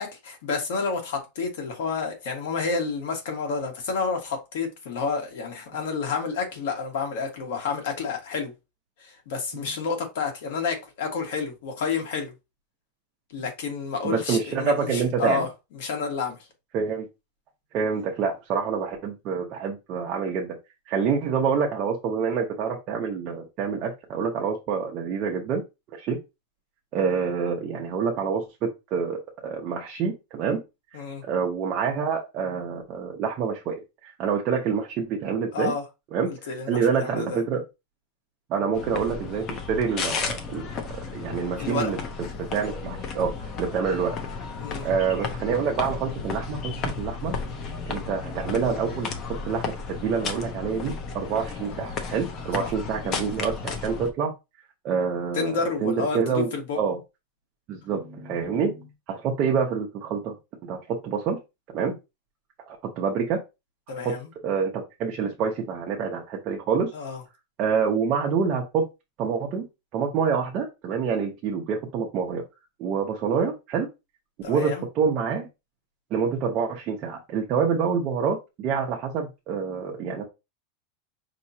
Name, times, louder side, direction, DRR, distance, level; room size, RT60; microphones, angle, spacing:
voice 1, 0.0-8.5 9.0-12.3 13.3-15.5 15.7-16.4 30.9-31.2 35.5-35.8 36.3-37.4 41.6-41.9 44.6-44.9 52.6-52.7 55.3-56.8 63.9-64.3 66.9-67.2 74.4-74.8, left 5 dB, 65° left, 1.5 m, -30 dB
voice 2, 14.0-15.5 16.7-17.1 17.7-20.5 20.9-25.6 25.9-26.2 26.9-30.6 31.3-33.8 34.0-35.7 36.1-36.3 36.7-37.6 38.5-40.7 40.9-42.0 42.5-43.3 43.6-44.2 44.8-47.3 47.9-49.2 49.4-49.7 50.0-54.3 54.8-56.5 56.7-57.0 57.7-60.3 60.6-61.4 61.7-61.9 62.7-63.4 64.0-64.1 64.4-66.9 67.6-68.9 69.2-69.6 69.9-72.4 72.8-73.9 74.5-75.5 76.1-80.2, right 6 dB, 30° right, 0.8 m, -27 dB
sound 1, 38.7-54.1, left 5 dB, 25° left, 0.7 m, -33 dB
5.4 x 3.0 x 2.8 m
supercardioid pair, 175°, 0 cm